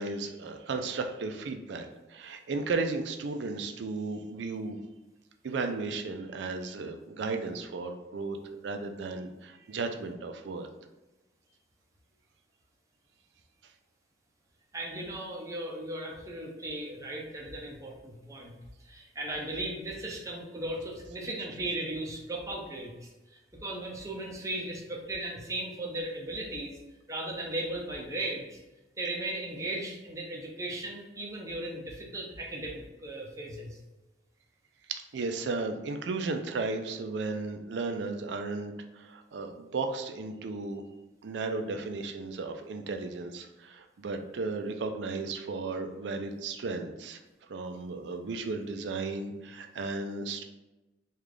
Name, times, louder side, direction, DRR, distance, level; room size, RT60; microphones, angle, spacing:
voice 1, 0.0-4.8 5.4-8.4 8.6-10.7 34.9-40.8 41.2-47.2 47.5-50.4, right 3 dB, 90° right, 6 dB, 0.4 m, -34 dB
voice 2, 14.7-18.6 18.8-26.8 27.1-28.6 29.0-33.8, right 1 dB, 20° right, -1 dB, 0.5 m, -37 dB
3.2 x 2.4 x 3.7 m, 1.0 s
head